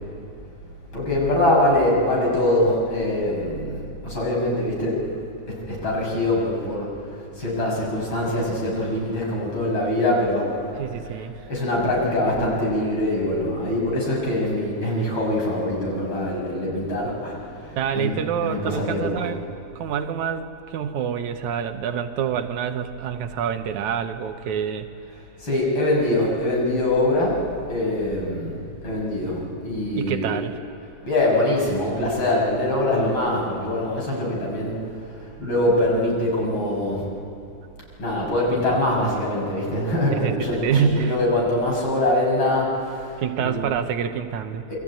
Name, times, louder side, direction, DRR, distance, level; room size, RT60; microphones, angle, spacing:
voice 1, 0.9-5.2 5.5-6.9 7.4-10.8 11.1-18.2 18.4-19.3 25.4-28.6 28.8-30.4 31.0-34.8 35.4-37.1 38.0-43.6 44.7-44.8, left 1 dB, 40° left, -2 dB, 6.9 m, -23 dB
voice 2, 10.8-11.4 17.8-24.9 30.0-30.6 40.1-41.2 43.2-44.7, right 7 dB, 80° right, 7 dB, 2.3 m, -26 dB
27.5 x 23.5 x 8.9 m, 2.7 s
omnidirectional pair, 3.4 m